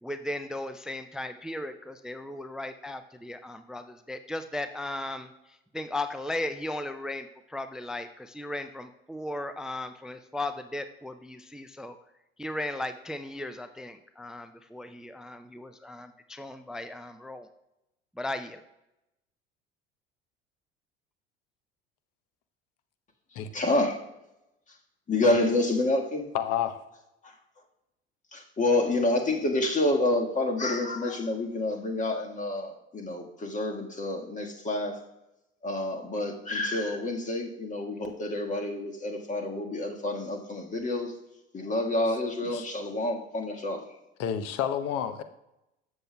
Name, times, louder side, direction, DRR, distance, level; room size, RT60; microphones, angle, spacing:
voice 1, 0.0-5.3 5.7-12.0 12.4-17.5 18.2-18.6, left 1 dB, ahead, 10 dB, 0.4 m, -36 dB
voice 2, 23.5-24.0 25.1-26.3 27.2-27.3 28.3-35.0 35.6-41.1 41.5-43.8, left 2 dB, 25° left, 3 dB, 1.5 m, -28 dB
voice 3, 26.3-26.8 42.4-42.7 44.2-45.2, left 9 dB, 50° left, 11 dB, 0.8 m, -29 dB
13.0 x 7.5 x 2.2 m, 0.90 s
figure-of-eight pair, 65°, 32 cm